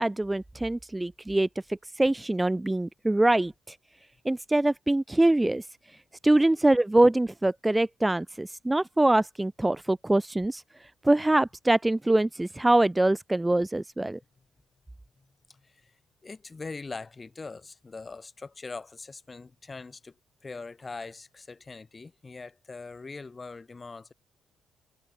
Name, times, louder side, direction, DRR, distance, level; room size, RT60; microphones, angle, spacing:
voice 1, 0.0-3.8 4.2-6.0 6.2-14.2, right 2 dB, 10° right, 0.5 m, -24 dB
voice 2, 15.2-15.9 16.2-20.2 20.4-24.1, left 4 dB, 25° left, 6.4 m, -42 dB
cardioid pair, 90°, 0 cm